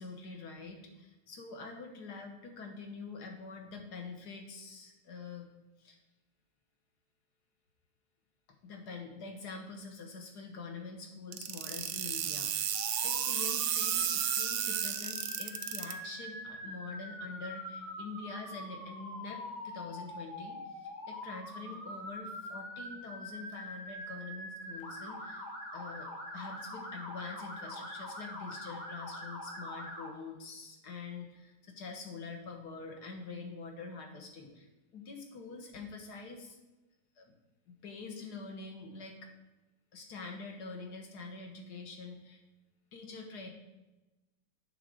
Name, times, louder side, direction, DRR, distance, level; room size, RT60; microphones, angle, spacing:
voice 1, 0.0-5.5 5.8-6.0 8.6-25.4 25.7-36.6 37.2-37.3 37.7-39.3 39.9-42.4 42.9-43.5, left 4 dB, 65° left, 3 dB, 1.7 m, -45 dB
sound 1, 11.3-15.9, right 9 dB, 80° right, 1.2 m, -32 dB
Motor vehicle (road) / Siren, 12.7-30.1, left 1 dB, 45° left, 1.8 m, -44 dB
8.8 x 3.7 x 6.4 m, 1.1 s
omnidirectional pair, 1.9 m